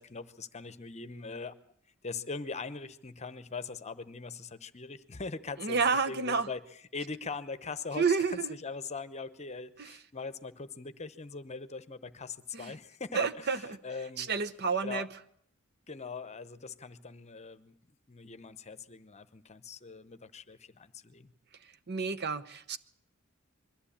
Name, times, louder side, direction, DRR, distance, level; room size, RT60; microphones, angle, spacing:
voice 1, 0.0-1.6 2.0-6.6 6.9-14.3 14.8-15.1 15.9-17.8 18.1-21.3, left 4 dB, 30° left, 13 dB, 0.9 m, -41 dB
voice 2, 5.6-6.5 8.0-8.5 9.8-9.9 12.5-12.7 13.1-13.8 14.2-15.1 21.9-22.8, right 5 dB, 50° right, 11 dB, 0.9 m, -30 dB
22.0 x 14.5 x 8.6 m, 0.66 s
head